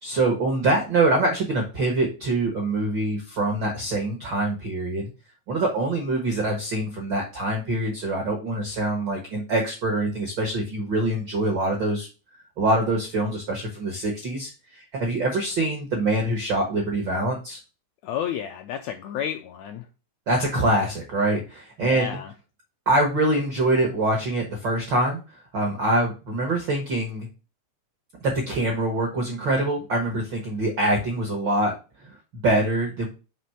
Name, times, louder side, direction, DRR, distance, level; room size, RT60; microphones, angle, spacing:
voice 1, 0.0-5.1 5.5-12.1 12.6-17.6 20.3-22.2 22.9-25.2 25.5-27.3 28.2-31.7 32.0-33.1, right 2 dB, 70° right, 2 dB, 1.0 m, -24 dB
voice 2, 18.0-19.8 21.8-22.3, left 9 dB, 85° left, 5 dB, 1.6 m, -31 dB
5.9 x 3.1 x 5.5 m, 0.32 s
omnidirectional pair, 3.7 m